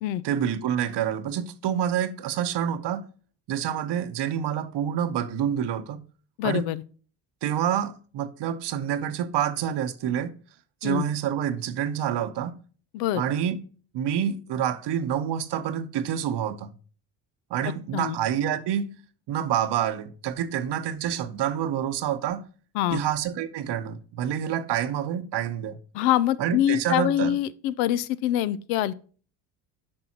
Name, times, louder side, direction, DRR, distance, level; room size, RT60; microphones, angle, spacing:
voice 1, 0.2-3.1 3.5-6.0 6.4-6.7 7.4-10.3 10.8-12.6 13.1-13.6 13.9-16.7 17.5-19.0 19.3-22.4 22.9-25.8 26.4-27.4, right 9 dB, 55° right, 0.9 m, -27 dB
voice 2, 6.4-6.8 10.8-11.1 12.9-13.2 17.6-18.2 22.7-23.0 25.9-28.9, left 12 dB, 85° left, 0.6 m, -25 dB
8.7 x 5.4 x 2.8 m
supercardioid pair, 70°, 48 cm